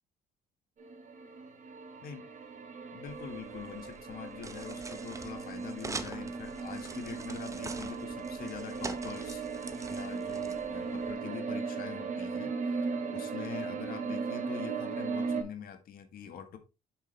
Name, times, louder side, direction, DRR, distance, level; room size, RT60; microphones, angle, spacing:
sound 1, 0.8-15.4, right 5 dB, 45° right, 2.3 m, -37 dB
voice 1, 2.9-12.5 13.1-16.6, left 8 dB, 60° left, 1.6 m, -44 dB
sound 2, 3.1-11.1, right 4 dB, 20° right, 0.7 m, -45 dB
7.2 x 6.3 x 3.4 m
cardioid pair, 110°, 17 cm